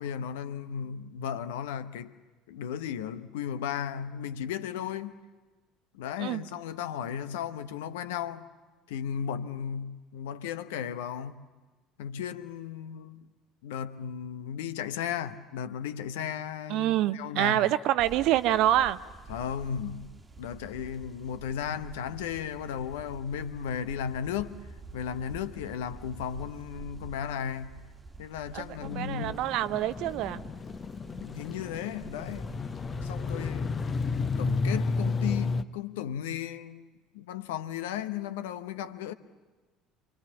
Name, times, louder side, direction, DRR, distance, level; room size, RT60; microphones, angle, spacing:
voice 1, 0.0-2.1 2.5-5.1 5.9-8.5 8.9-11.4 12.0-13.3 13.6-17.7 19.3-20.1 20.4-24.6 24.9-27.7 28.2-29.5 31.2-32.5 33.0-33.8 34.4-36.9 37.1-39.1, left 8 dB, 65° left, 0.9 m, -35 dB
voice 2, 16.7-19.0 28.5-28.6 29.0-30.4, right 13 dB, 55° right, 0.7 m, -26 dB
sound 1, 18.0-34.4, right 4 dB, 20° right, 1.6 m, -48 dB
sound 2, 28.8-35.6, left 4 dB, 30° left, 0.8 m, -32 dB
28.0 x 24.0 x 7.2 m
figure-of-eight pair, 60°, 0 cm